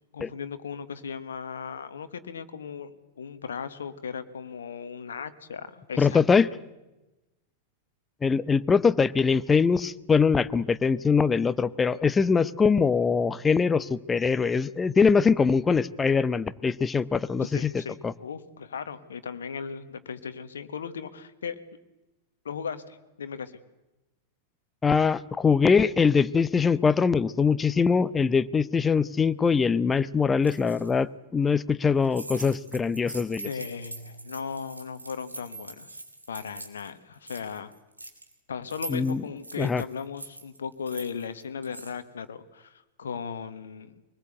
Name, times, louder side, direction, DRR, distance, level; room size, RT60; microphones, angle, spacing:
voice 1, 0.1-6.2 17.5-21.6 22.4-23.6 33.4-36.0 36.3-37.7 38.5-43.9, left 6 dB, 65° left, 11 dB, 1.3 m, -37 dB
voice 2, 6.0-6.5 8.2-17.7 18.0-18.1 24.8-33.5 38.9-39.2 39.6-39.8, left 5 dB, 15° left, 16 dB, 0.8 m, -23 dB
sound 1, 30.4-30.9 32.0-36.9 37.1-38.3 38.7-41.9, right 2 dB, 85° right, 2.7 m, -42 dB
23.5 x 20.0 x 8.0 m, 1.0 s
figure-of-eight pair, 90°, 0 cm